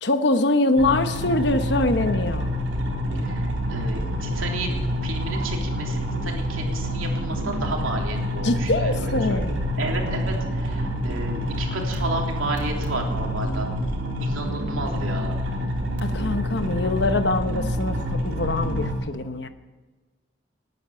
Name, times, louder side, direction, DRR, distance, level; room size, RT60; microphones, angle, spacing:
voice 1, 0.0-2.5 8.4-9.5 16.0-18.0 18.2-19.5, left 2 dB, 55° left, 9 dB, 1.1 m, -23 dB
sound 1, 0.8-18.9, equal, 65° right, 3.5 m, -27 dB
voice 2, 3.7-13.7 14.2-15.3, right 2 dB, 90° right, 1 dB, 3.3 m, -32 dB
19.0 x 9.6 x 7.0 m, 1.3 s
head